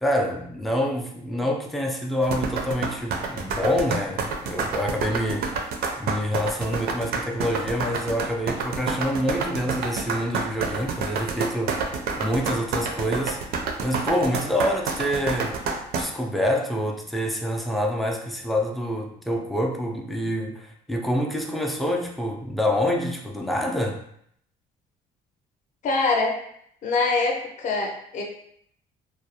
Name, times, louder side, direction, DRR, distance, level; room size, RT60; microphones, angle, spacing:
voice 1, 0.0-5.7 6.0-11.9 12.2-13.4 13.8-15.6 16.0-24.0, equal, ahead, 0 dB, 0.3 m, -26 dB
sound 1, 2.2-16.0, right 4 dB, 65° right, 0.4 m, -28 dB
voice 2, 25.8-26.4 26.8-28.2, left 3 dB, 50° left, 0 dB, 0.5 m, -24 dB
2.3 x 2.0 x 2.7 m, 0.67 s
cardioid pair, 110°, 17 cm